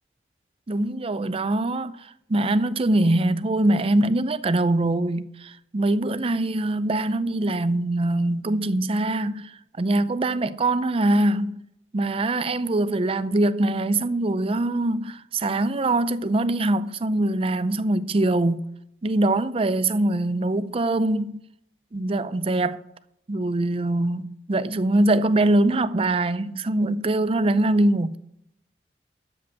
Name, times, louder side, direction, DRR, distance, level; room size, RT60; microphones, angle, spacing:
voice 1, 0.7-11.6 11.9-18.7 19.0-21.4 21.9-22.8 23.3-28.2, right 2 dB, 35° right, 0.5 m, -23 dB
12.5 x 5.9 x 7.5 m
head